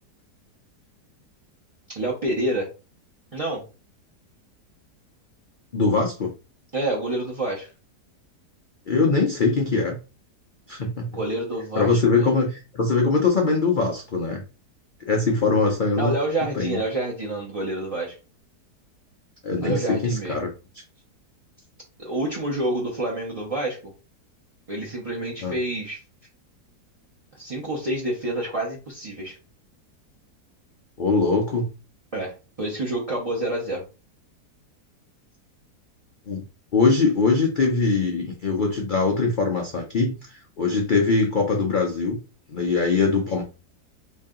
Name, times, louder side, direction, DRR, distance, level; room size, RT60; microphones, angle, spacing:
voice 1, 1.9-2.7 3.3-3.6 6.7-7.7 11.1-12.4 16.0-18.2 19.6-20.4 22.0-23.9 24.7-26.0 27.4-29.3 32.1-33.8, right 1 dB, 35° right, -3 dB, 0.5 m, -28 dB
voice 2, 5.7-6.3 8.9-10.0 10.7-11.1 11.8-14.4 15.1-16.1 16.5-16.8 19.4-20.5 25.4-25.5 31.0-31.7 36.3-36.4 36.7-42.2 42.5-43.4, left 4 dB, 85° left, 1 dB, 0.4 m, -22 dB
3.1 x 2.7 x 3.7 m, 0.32 s
omnidirectional pair, 1.8 m